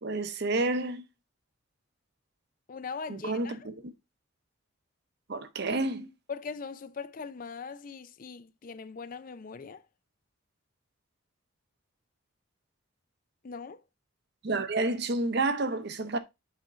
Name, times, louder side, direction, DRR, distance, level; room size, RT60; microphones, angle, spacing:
voice 1, 0.0-1.0 3.1-3.9 5.3-6.1 14.4-16.2, right 2 dB, 50° right, 0.8 m, -30 dB
voice 2, 2.7-3.6 6.3-9.8 13.4-13.8, left 5 dB, 40° left, 0.4 m, -40 dB
7.6 x 4.4 x 3.8 m
head